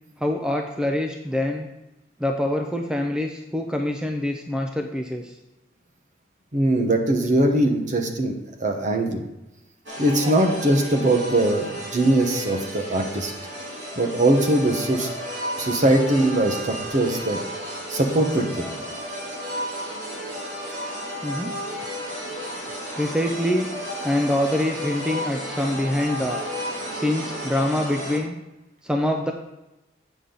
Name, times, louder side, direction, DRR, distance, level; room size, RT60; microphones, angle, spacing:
voice 1, 0.2-1.7 2.2-5.4 21.2-21.5 23.0-23.7 24.0-26.4 26.9-28.3 28.8-29.3, left 1 dB, 5° right, 3 dB, 0.4 m, -25 dB
voice 2, 6.5-8.3 8.6-9.2 10.0-13.3 14.0-15.1 15.6-17.4 17.9-18.7, right 1 dB, 40° right, 4 dB, 1.0 m, -21 dB
sound 1, 9.9-28.2, equal, 85° right, 2.6 m, -33 dB
8.3 x 7.1 x 3.8 m, 0.97 s
head